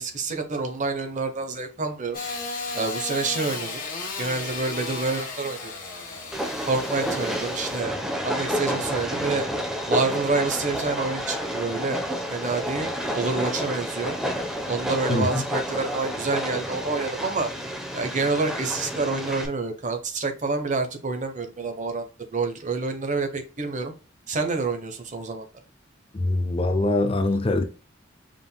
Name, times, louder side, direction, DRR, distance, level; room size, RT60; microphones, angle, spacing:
voice 1, 0.0-2.2 2.7-3.8 4.2-5.7 6.7-7.9 8.2-9.4 9.9-12.0 12.3-12.9 13.1-14.1 14.7-17.5 17.9-22.1 22.3-23.9 24.3-25.5, right 3 dB, 40° right, 0.9 m, -27 dB
Engine starting / Sawing, 2.1-7.8, left 3 dB, 45° left, 1.7 m, -34 dB
Train, 6.3-19.5, equal, ahead, 0.8 m, -30 dB
voice 2, 15.1-15.4 26.1-27.6, left 2 dB, 30° left, 0.6 m, -23 dB
5.1 x 3.6 x 2.2 m
head